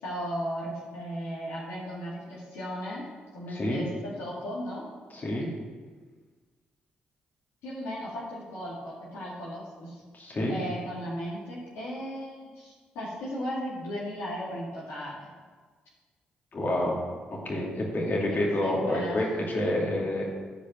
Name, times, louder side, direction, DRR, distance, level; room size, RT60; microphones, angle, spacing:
voice 1, 0.0-3.0 3.3-4.8 7.6-10.0 10.5-15.3 18.3-19.2, equal, 70° left, -7 dB, 2.1 m, -36 dB
voice 2, 3.5-3.8 5.1-5.5 10.1-10.6 16.5-17.0 17.4-20.3, left 1 dB, 40° left, -3 dB, 2.6 m, -28 dB
10.5 x 5.1 x 6.3 m, 1.5 s
hypercardioid pair, 40°, 4 cm